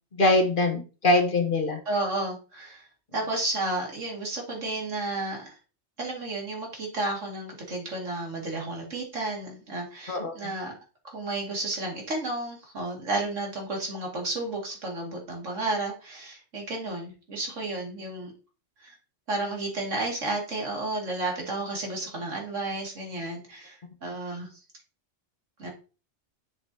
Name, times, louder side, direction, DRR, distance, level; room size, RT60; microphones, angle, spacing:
voice 1, 0.1-1.8 10.1-10.5, left 2 dB, 45° left, 4 dB, 1.4 m, -23 dB
voice 2, 1.9-2.9 3.1-5.6 6.0-10.8 11.0-18.3 18.8-18.9 19.3-24.6 25.6-25.7, right 2 dB, 85° right, 0 dB, 2.8 m, -32 dB
7.2 x 6.8 x 2.8 m, 0.33 s
omnidirectional pair, 1.2 m